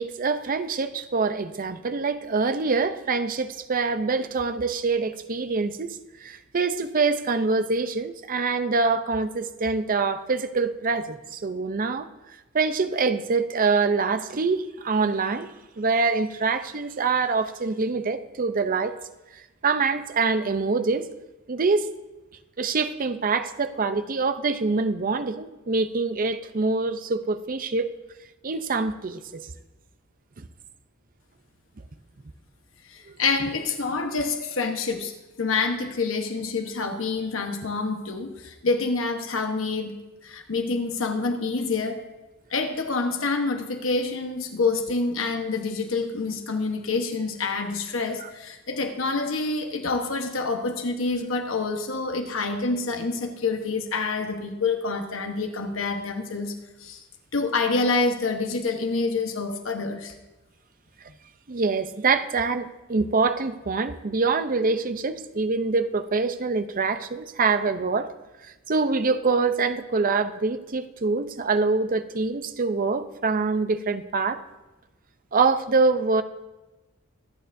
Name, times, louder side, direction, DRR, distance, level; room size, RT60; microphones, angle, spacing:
voice 1, 0.0-12.1 12.5-19.0 19.6-21.1 21.5-21.8 22.6-27.9 28.4-29.5 61.5-68.1 68.7-74.4 75.3-76.2, right 4 dB, 40° right, 0.6 m, -25 dB
voice 2, 32.9-35.1 35.4-39.9 40.2-42.0 42.5-56.5 56.8-57.0 57.3-60.1, left 3 dB, 70° left, 1.1 m, -27 dB
24.5 x 9.2 x 2.6 m
head